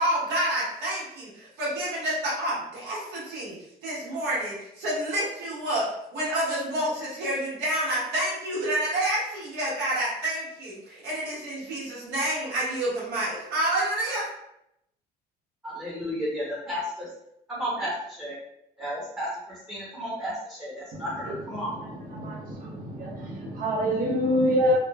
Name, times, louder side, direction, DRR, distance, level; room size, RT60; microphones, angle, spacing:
voice 1, 0.0-3.6 3.8-14.3, right 1 dB, 80° right, -6 dB, 1.3 m, -28 dB
voice 2, 15.6-17.1 17.5-18.3 18.8-19.3 19.7-21.7, equal, 10° right, -7 dB, 0.9 m, -32 dB
voice 3, 22.1-24.8, equal, 55° right, -1 dB, 0.8 m, -26 dB
3.0 x 2.1 x 2.3 m, 0.81 s
cardioid pair, 110°, 17 cm